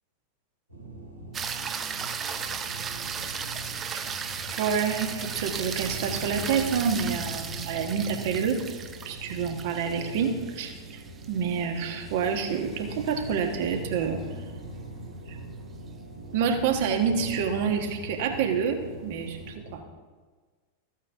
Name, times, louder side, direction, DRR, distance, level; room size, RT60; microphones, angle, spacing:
sound 1, 0.7-19.7, right 1 dB, 80° right, 2.3 m, -41 dB
sound 2, 1.3-13.7 18.2-18.3, right 6 dB, 25° right, 0.7 m, -36 dB
voice 1, 4.6-8.6 9.0-10.7 11.3-14.2 15.3-15.4 16.3-19.8, right 6 dB, 50° right, 4 dB, 1.4 m, -28 dB
14.0 x 8.3 x 3.5 m, 1.4 s
figure-of-eight pair, 90°, 0 cm